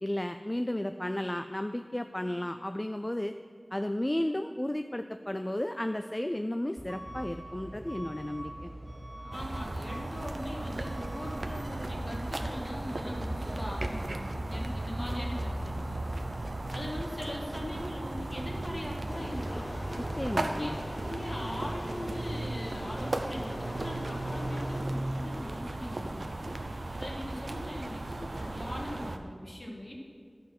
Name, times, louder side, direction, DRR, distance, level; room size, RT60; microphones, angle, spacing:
voice 1, 0.0-3.3 3.7-8.7 20.0-20.8, left 1 dB, 25° left, 8 dB, 0.3 m, -33 dB
Truck / Alarm, 6.8-24.0, right 1 dB, 55° right, 2.3 m, -42 dB
voice 2, 9.2-16.1 16.7-19.7 20.3-20.7 21.1-26.6 27.0-30.0, left 1 dB, 45° left, -1 dB, 1.8 m, -41 dB
sound 1, 9.3-29.2, right 2 dB, 80° right, 0.6 m, -36 dB
sound 2, 19.1-24.8, left 1 dB, 80° left, 1.1 m, -43 dB
11.5 x 5.3 x 6.0 m, 2.1 s
wide cardioid pair, 55°, 0 cm